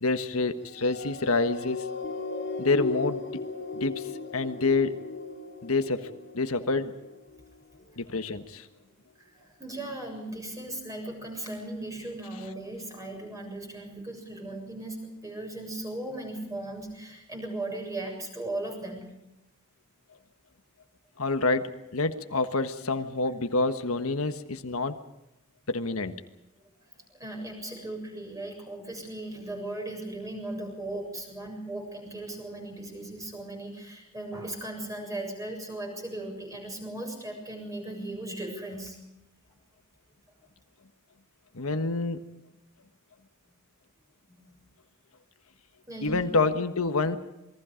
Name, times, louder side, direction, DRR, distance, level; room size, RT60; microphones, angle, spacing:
voice 1, 0.0-1.9 2.6-3.4 3.7-5.0 5.6-6.1 6.3-6.9 8.0-8.7 21.2-25.0 25.7-26.1 41.5-42.2 46.0-47.2, left 3 dB, 85° left, 8 dB, 1.4 m, -27 dB
sound 1, 0.7-7.4 8.0-8.2, left 4 dB, 60° left, 3.1 m, -36 dB
voice 2, 9.6-15.0 15.2-19.1 27.2-39.0 44.3-44.4 45.9-46.1, right 2 dB, 15° right, 2 dB, 7.3 m, -37 dB
28.0 x 22.0 x 5.1 m, 0.91 s
head